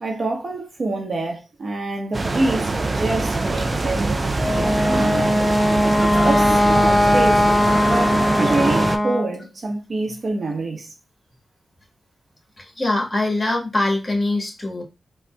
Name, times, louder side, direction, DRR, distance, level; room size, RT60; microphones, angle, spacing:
voice 1, 0.0-5.4 6.0-7.5 7.8-10.9, right 2 dB, 60° right, 0.8 m, -26 dB
sound 1, 2.1-9.0, right 2 dB, 40° right, 0.4 m, -23 dB
Wind instrument woodwind instrument, 4.4-9.3, left 1 dB, ahead, 0.7 m, -19 dB
voice 2, 12.6-14.8, left 2 dB, 30° left, 1.4 m, -23 dB
3.8 x 2.2 x 2.2 m
cardioid pair, 45°, 0 cm